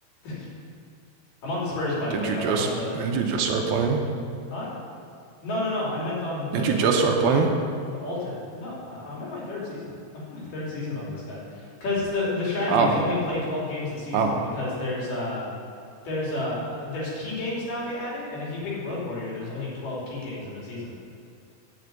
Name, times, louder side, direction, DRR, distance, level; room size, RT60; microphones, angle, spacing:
voice 1, 1.4-3.0 4.5-4.7 5.4-6.9 7.9-15.5 16.0-20.9, left 2 dB, 60° left, -6 dB, 4.2 m, -31 dB
voice 2, 2.1-2.7 2.9-4.0 6.5-7.5 12.7-13.0 14.1-14.4, right 5 dB, 80° right, 2 dB, 2.6 m, -23 dB
10.5 x 6.0 x 8.0 m, 2.6 s
omnidirectional pair, 4.5 m